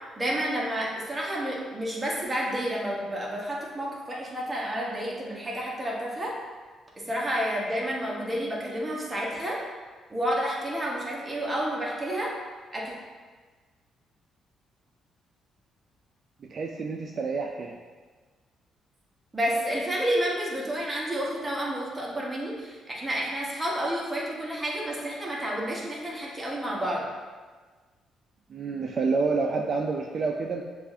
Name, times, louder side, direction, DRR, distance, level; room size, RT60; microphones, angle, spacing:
voice 1, 0.2-6.4 7.0-9.6 10.1-12.4 12.7-12.9 19.3-27.1, equal, 15° right, -4 dB, 1.1 m, -30 dB
voice 2, 16.4-17.8 28.5-30.6, right 4 dB, 50° right, 1 dB, 0.3 m, -28 dB
6.6 x 2.5 x 2.7 m, 1.4 s
cardioid pair, 90°, 0 cm